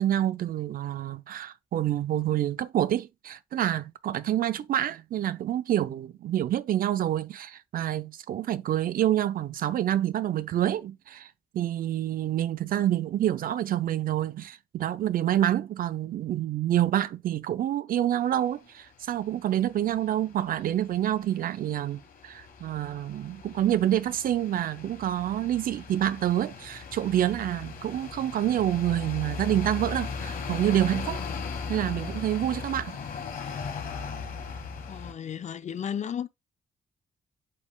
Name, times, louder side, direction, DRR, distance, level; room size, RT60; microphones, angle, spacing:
voice 1, 0.0-11.3 11.5-31.2 31.7-33.0, right 12 dB, 70° right, 0.5 m, -27 dB
sound 1, 18.2-18.5 19.1-35.1, left 5 dB, 70° left, 1.4 m, -38 dB
voice 2, 34.9-36.3, left 8 dB, 50° left, 0.6 m, -34 dB
8.4 x 5.3 x 2.3 m
cardioid pair, 65°, 15 cm